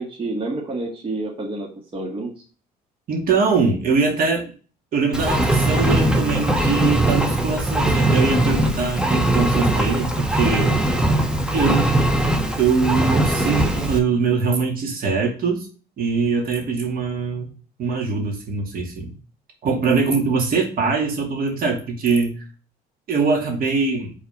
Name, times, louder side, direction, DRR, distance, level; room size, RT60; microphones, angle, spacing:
voice 1, 0.0-2.3, right 2 dB, 30° right, -2 dB, 1.8 m, -29 dB
voice 2, 3.1-4.5 4.9-10.7 11.5-11.9 12.6-15.7 16.0-17.5 17.8-19.1 19.6-22.4 23.1-24.1, right 4 dB, 60° right, 1 dB, 2.4 m, -22 dB
Engine, 5.1-14.0, right 1 dB, 5° right, 1.1 m, -20 dB
5.6 x 4.1 x 5.2 m, 0.38 s
cardioid pair, 110°, 17 cm